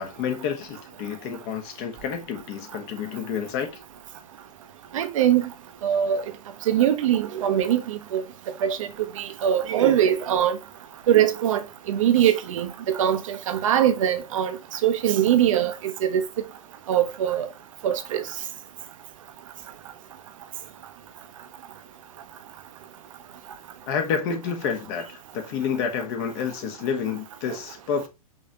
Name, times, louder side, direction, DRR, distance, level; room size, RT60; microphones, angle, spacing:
voice 1, 0.0-3.7 23.9-25.1 25.3-28.1, left 7 dB, 45° left, 1.2 m, -29 dB
voice 2, 4.9-5.5 5.8-6.2 6.7-8.2 8.6-8.9 9.2-10.6 11.1-11.6 11.9-14.6 14.8-16.2 16.9-17.5 17.8-18.2, right 10 dB, 60° right, 0.8 m, -22 dB
5.3 x 3.3 x 2.9 m
figure-of-eight pair, 110°, 19 cm